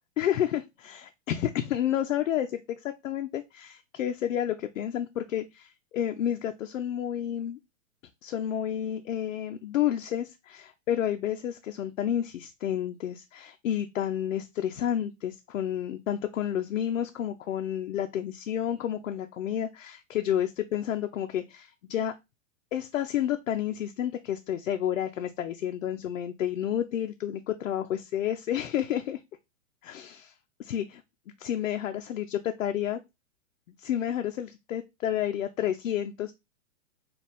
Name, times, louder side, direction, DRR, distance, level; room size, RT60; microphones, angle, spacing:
voice 1, 0.2-7.6 8.2-22.1 22.7-29.2 29.8-30.3 30.6-31.0 31.4-33.0 33.8-36.3, left 10 dB, 80° left, 0.5 m, -30 dB
4.2 x 2.3 x 3.4 m
hypercardioid pair, 120°, 39 cm